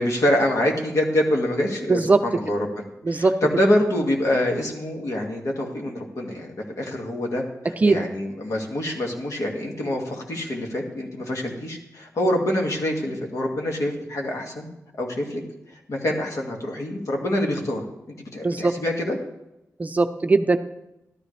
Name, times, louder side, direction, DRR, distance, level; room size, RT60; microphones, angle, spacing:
voice 1, 0.0-14.7 15.0-15.4 15.9-17.8 18.3-19.2, left 1 dB, 60° left, 0 dB, 2.0 m, -25 dB
voice 2, 1.9-2.2 3.1-3.3 7.8-8.0 18.4-18.7 19.8-20.6, right 3 dB, 25° right, 8 dB, 0.5 m, -19 dB
13.0 x 12.5 x 3.3 m, 0.87 s
wide cardioid pair, 170°, 6 cm